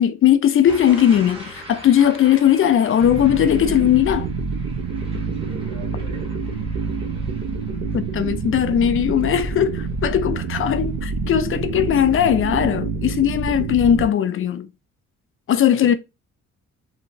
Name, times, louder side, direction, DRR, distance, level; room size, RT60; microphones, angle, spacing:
voice 1, 0.0-4.3 7.9-14.7 15.5-15.9, left 10 dB, 45° left, 0.4 m, -18 dB
sound 1, 0.7-11.5 11.9-12.3, right 1 dB, 20° right, 1.2 m, -43 dB
sound 2, 3.0-14.1, right 4 dB, 65° right, 0.7 m, -27 dB
voice 2, 5.0-6.5 15.7-16.0, right 2 dB, 85° right, 1.6 m, -39 dB
2.8 x 2.6 x 2.6 m
cardioid pair, 90°, 30 cm